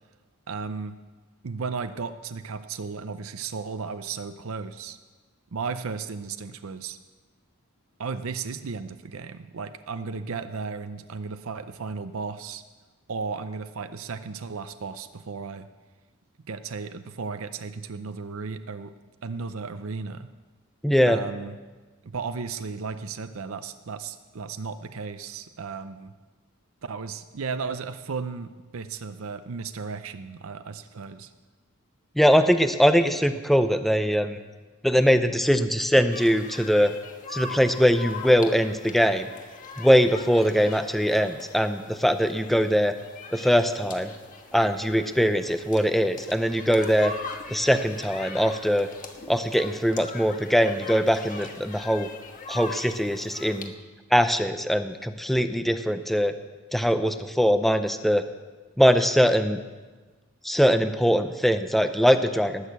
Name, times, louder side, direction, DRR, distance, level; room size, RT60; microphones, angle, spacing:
voice 1, 0.5-1.0 1.4-5.0 5.5-7.0 8.0-12.6 13.1-15.7 16.5-18.9 19.2-20.3 21.1-21.5 22.0-26.1 26.8-31.3, right 5 dB, 70° right, 10 dB, 0.6 m, -35 dB
voice 2, 20.8-21.2 32.2-34.4 34.8-36.9 37.3-39.3 39.8-42.9 43.3-44.1 44.5-47.1 47.5-48.9 49.3-52.1 52.5-53.7 54.1-56.3 56.7-58.2 58.8-59.6 60.4-62.7, equal, ahead, 9 dB, 0.5 m, -22 dB
sound 1, 36.1-53.7, left 3 dB, 40° left, 1.3 m, -41 dB
19.0 x 6.5 x 8.1 m, 1.3 s
head